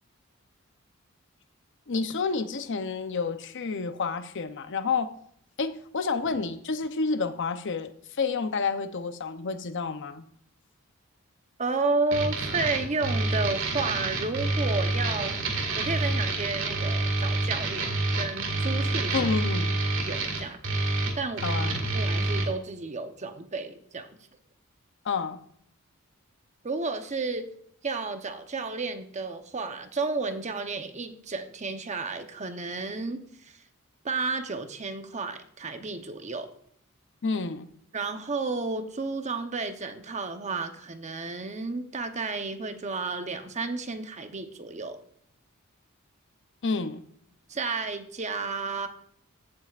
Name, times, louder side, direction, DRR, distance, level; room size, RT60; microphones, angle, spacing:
voice 1, 1.9-5.1 5.6-10.2 19.1-19.8 21.4-21.8 25.0-25.4 37.2-37.7 46.6-47.0, left 4 dB, 60° left, 10 dB, 0.7 m, -29 dB
voice 2, 11.6-15.3 15.8-19.3 20.0-20.6 21.2-21.5 21.9-24.1 26.6-27.5 27.8-33.5 34.0-36.5 37.9-45.0 47.5-48.9, right 3 dB, 35° right, 8 dB, 0.9 m, -32 dB
sound 1, 12.1-22.5, right 2 dB, 65° right, 2.1 m, -28 dB
15.5 x 7.6 x 2.5 m, 0.68 s
head